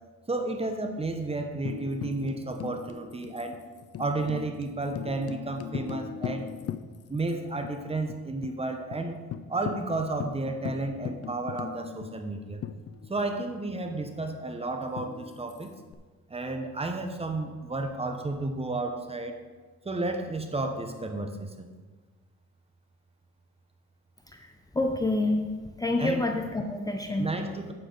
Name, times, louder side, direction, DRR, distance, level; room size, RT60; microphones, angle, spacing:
voice 1, 0.3-3.6 4.0-6.5 7.1-9.2 9.5-12.6 13.1-15.7 16.3-19.4 19.8-21.7 26.0-26.2 27.2-27.7, right 2 dB, 20° right, 5 dB, 1.0 m, -32 dB
Tambourine, 1.7-7.3 7.6-7.7 8.1-8.6 8.9-9.0 9.3-13.4 15.0-15.9, left 9 dB, 55° left, 0.6 m, -39 dB
voice 2, 24.7-25.4 25.8-27.3, left 2 dB, 10° left, 3 dB, 0.7 m, -27 dB
8.4 x 8.3 x 4.0 m, 1.4 s
cardioid pair, 90°, 30 cm